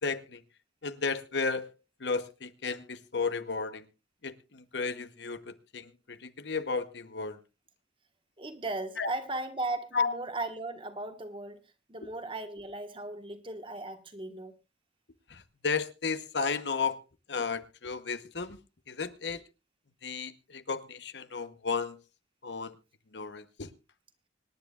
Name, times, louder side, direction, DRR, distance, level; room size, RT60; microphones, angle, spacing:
voice 1, 0.0-0.4 0.8-1.7 2.0-3.8 4.2-7.4 9.0-9.1 9.9-10.1 15.3-17.0 17.3-18.6 18.9-19.4 20.0-22.0 22.4-22.7 23.1-23.7, left 4 dB, 70° left, 1.0 m, -33 dB
voice 2, 8.4-11.6 11.9-14.5, right 2 dB, 30° right, 1.4 m, -37 dB
25.5 x 10.5 x 2.4 m
head